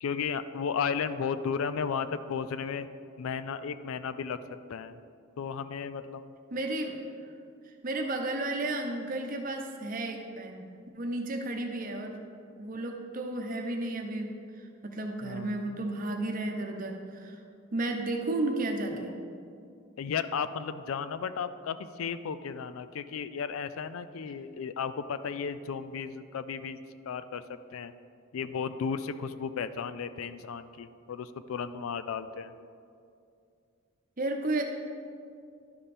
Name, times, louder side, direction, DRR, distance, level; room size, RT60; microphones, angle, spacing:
voice 1, 0.0-2.9 3.2-4.4 4.7-5.0 5.4-6.3 15.2-15.8 18.9-19.1 20.0-26.8 27.1-27.4 27.7-27.9 28.3-32.5, left 6 dB, 80° left, 13 dB, 0.4 m, -34 dB
voice 2, 6.5-7.0 7.7-10.7 10.9-12.2 12.6-17.4 17.7-19.1 34.2-34.6, right 2 dB, 40° right, 3 dB, 0.8 m, -33 dB
11.0 x 5.2 x 4.3 m, 2.4 s
head